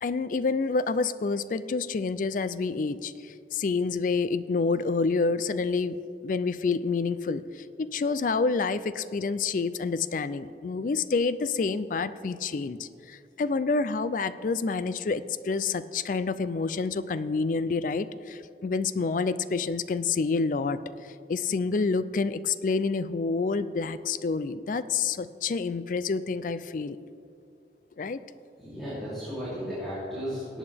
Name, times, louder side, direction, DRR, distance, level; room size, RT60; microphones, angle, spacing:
voice 1, 0.0-6.0 6.2-20.8 21.3-27.0 28.0-28.2, left 4 dB, 45° left, 14 dB, 0.4 m, -28 dB
voice 2, 28.6-30.6, equal, ahead, -12 dB, 3.1 m, -35 dB
18.0 x 8.6 x 3.4 m, 2.4 s
head